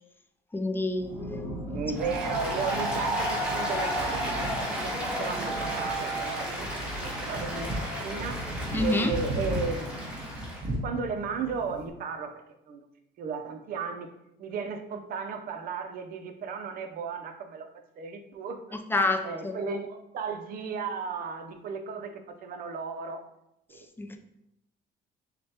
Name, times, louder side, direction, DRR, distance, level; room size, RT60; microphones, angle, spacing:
voice 1, 0.5-1.8 8.7-9.1 18.9-19.5 24.0-24.2, left 2 dB, 10° left, 5 dB, 0.4 m, -28 dB
sound 1, 0.9-11.9, right 1 dB, 30° right, 1.3 m, -37 dB
voice 2, 1.7-4.5 4.8-8.4 8.8-9.9 10.8-12.3 12.7-12.9 13.2-14.1 14.4-17.7 18.0-18.6 19.2-23.2 23.7-23.9, right 5 dB, 60° right, 6 dB, 0.6 m, -35 dB
Applause, 1.9-10.6, equal, 5° right, 1.2 m, -33 dB
6.5 x 2.2 x 2.8 m, 0.82 s
cardioid pair, 110°, 17 cm